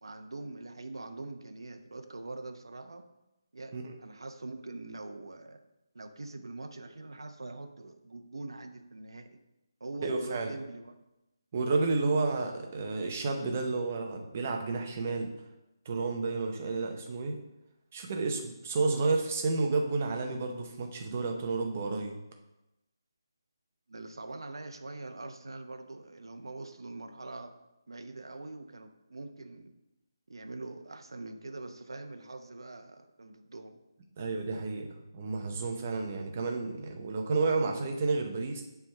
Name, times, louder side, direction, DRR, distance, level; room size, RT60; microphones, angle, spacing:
voice 1, 0.0-3.0 3.5-5.6 5.9-9.4 9.8-11.0 23.9-27.5 27.9-29.7 30.3-33.8, right 2 dB, 85° right, 6 dB, 0.8 m, -43 dB
voice 2, 10.0-10.5 11.5-15.3 15.9-17.4 17.9-22.2 34.2-34.9 35.1-38.6, right 3 dB, 25° right, 3 dB, 0.7 m, -31 dB
7.4 x 3.5 x 6.3 m, 0.94 s
hypercardioid pair, 175°, 2 cm